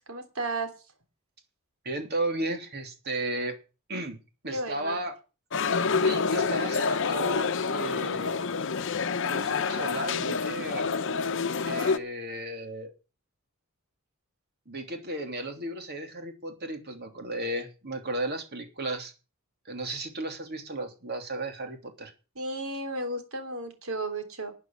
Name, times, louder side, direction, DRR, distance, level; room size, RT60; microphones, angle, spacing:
voice 1, 0.1-0.7 4.5-5.0 22.4-24.5, right 2 dB, 75° right, 7 dB, 3.4 m, -33 dB
voice 2, 1.8-3.6 3.9-4.2 4.4-5.2 6.0-8.3 9.2-10.9 11.6-12.9 14.7-19.1 19.6-22.1, right 1 dB, 50° right, 5 dB, 3.1 m, -34 dB
sound 1, 5.5-12.0, left 5 dB, 60° left, 0.9 m, -27 dB
12.5 x 8.8 x 7.5 m, 0.33 s
head